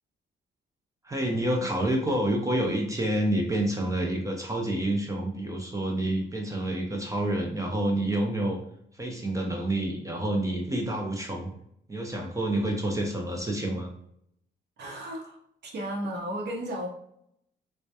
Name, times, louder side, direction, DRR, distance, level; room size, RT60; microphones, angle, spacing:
voice 1, 1.0-8.6 8.9-11.5 11.9-13.9, right 1 dB, 15° right, 1 dB, 0.5 m, -28 dB
voice 2, 14.8-16.9, equal, 60° right, 0 dB, 0.7 m, -34 dB
2.2 x 2.1 x 2.7 m, 0.74 s
cardioid pair, 90°, 20 cm